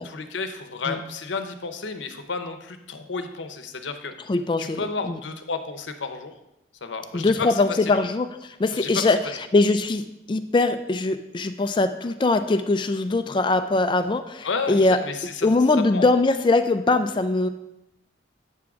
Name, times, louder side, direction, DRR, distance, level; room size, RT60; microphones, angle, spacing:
voice 1, 0.0-4.1 4.6-6.3 6.8-8.0 8.7-8.9 14.4-15.6 15.9-16.1, left 4 dB, 80° left, 8 dB, 0.7 m, -32 dB
voice 2, 4.3-5.2 7.1-9.2 9.5-10.0 10.3-15.0 15.4-17.5, left 3 dB, 25° left, 9 dB, 0.3 m, -22 dB
8.4 x 3.7 x 5.9 m, 0.88 s
head